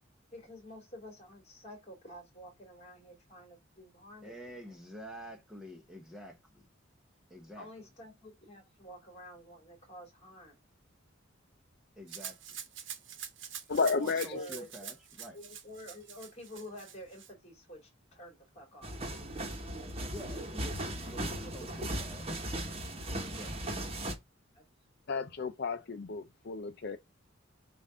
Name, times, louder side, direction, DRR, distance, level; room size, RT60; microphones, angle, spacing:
voice 1, 0.3-4.8 7.6-10.6 14.3-14.7 15.3-19.0 21.6-21.8 23.8-23.9 24.5-24.6, equal, 30° left, 2.6 m, -50 dB
voice 2, 4.2-6.7 7.3-7.7 12.0-12.6 13.9-15.4 20.0-22.3 23.3-23.6, equal, 5° right, 0.9 m, -48 dB
Rattle (instrument), 12.1-17.3, right 9 dB, 65° right, 1.0 m, -45 dB
voice 3, 13.7-14.5 25.1-27.0, left 4 dB, 55° left, 0.5 m, -32 dB
sound 1, 18.8-24.1, right 1 dB, 30° right, 1.1 m, -37 dB
7.0 x 2.6 x 5.4 m
head